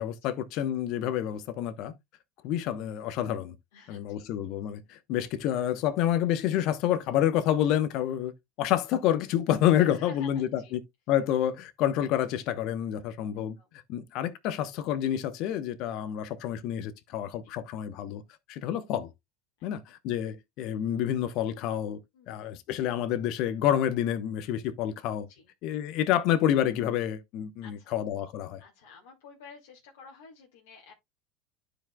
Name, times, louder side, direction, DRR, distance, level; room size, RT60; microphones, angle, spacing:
voice 1, 0.0-1.9 2.4-3.5 3.9-8.3 8.6-10.8 11.1-13.6 13.9-18.2 18.5-19.1 19.6-22.0 22.3-25.3 25.6-28.6, left 11 dB, 60° left, 0.9 m, -28 dB
voice 2, 3.7-4.3 9.8-10.8 13.6-13.7 17.4-17.5 19.6-19.7 22.1-22.5 25.3-25.5 27.6-28.0 28.6-30.9, left 5 dB, 75° left, 1.9 m, -52 dB
12.0 x 4.9 x 2.3 m
hypercardioid pair, 80°, 0 cm